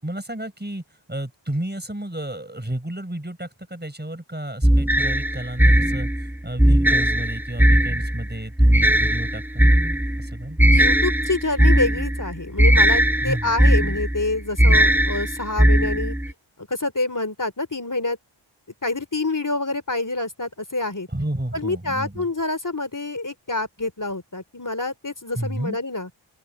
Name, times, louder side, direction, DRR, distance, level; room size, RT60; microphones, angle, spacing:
voice 1, 0.0-0.8 1.1-6.1 6.4-9.7 10.2-10.6 13.2-13.5 21.1-22.3 25.3-25.8, right 1 dB, 20° right, 5.8 m, -31 dB
sound 1, 4.6-16.3, right 1 dB, 5° right, 0.6 m, -18 dB
voice 2, 10.7-16.1 16.7-18.2 18.8-21.1 21.5-26.1, left 2 dB, 40° left, 3.6 m, -27 dB
open air
wide cardioid pair, 45°, 48 cm